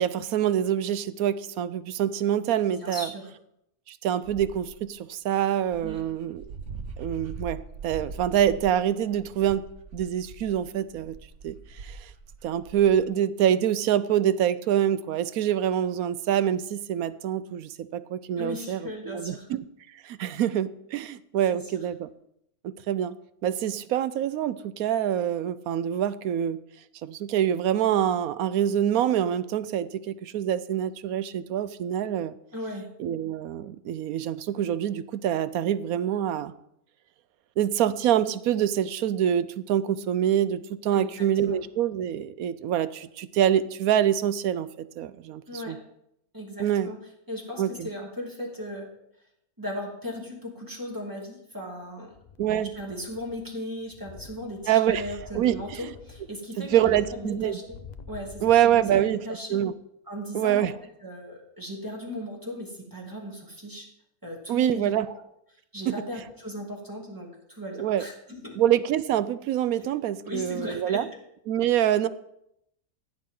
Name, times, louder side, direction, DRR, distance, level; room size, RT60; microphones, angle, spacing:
voice 1, 0.0-3.1 3.9-6.5 7.0-9.6 9.9-11.2 11.4-12.1 12.4-19.7 19.9-22.1 22.6-23.1 23.4-26.6 27.0-32.3 33.0-36.5 37.6-45.8 46.6-46.9 47.6-47.9 52.4-52.7 54.7-55.9 56.6-57.6 58.4-59.2 59.5-59.7 60.3-60.7 64.5-65.1 65.9-66.0 67.8-68.0 68.6-71.1 71.5-72.1, right 10 dB, 75° right, 14 dB, 1.1 m, -25 dB
voice 2, 2.7-3.3 5.8-6.1 18.4-19.5 21.5-21.7 32.5-32.9 40.9-41.6 45.5-45.8 46.3-47.0 47.3-48.9 49.6-52.1 52.8-57.8 58.1-58.4 58.7-59.6 60.1-60.7 61.0-63.9 64.2-65.2 65.7-68.6 70.2-71.0, left 1 dB, 15° right, -2 dB, 2.8 m, -37 dB
Dog, 4.2-4.8 5.4-5.5 5.7-13.0, right 4 dB, 55° right, 1.3 m, -42 dB
sound 1, 52.1-53.6 53.9-59.2 59.5-59.6, left 5 dB, 65° left, 0.4 m, -47 dB
15.5 x 10.0 x 3.8 m, 0.77 s
omnidirectional pair, 1.6 m